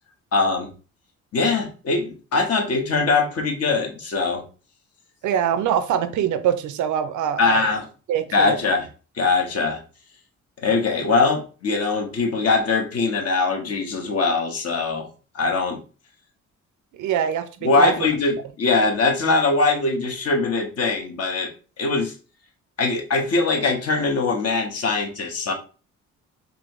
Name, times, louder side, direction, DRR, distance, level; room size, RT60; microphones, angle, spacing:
voice 1, 0.3-0.7 1.3-4.4 7.4-7.9 8.3-8.9 9.2-9.8 10.6-15.1 15.3-15.8 17.6-21.5 21.8-22.1 22.8-25.5, left 3 dB, 55° left, 1.1 m, -22 dB
voice 2, 5.2-7.7 8.1-8.6 16.9-17.9, right 9 dB, 75° right, 0.5 m, -23 dB
4.2 x 2.7 x 2.9 m
cardioid pair, 90°, 30 cm